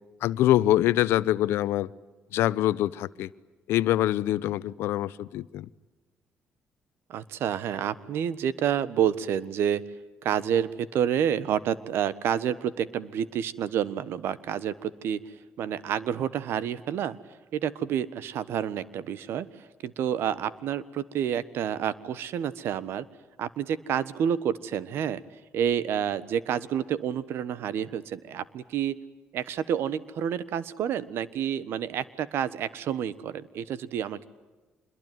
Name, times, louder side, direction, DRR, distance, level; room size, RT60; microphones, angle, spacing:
voice 1, 0.2-1.9 2.3-3.3 3.7-5.7, left 14 dB, 80° left, 18 dB, 0.8 m, -24 dB
voice 2, 7.1-9.8 10.2-17.2 17.5-19.5 19.8-23.0 23.4-25.2 25.5-29.0 29.3-34.3, right 9 dB, 75° right, 17 dB, 1.3 m, -29 dB
26.5 x 22.0 x 9.4 m, 1.2 s
supercardioid pair, 70°, 4 cm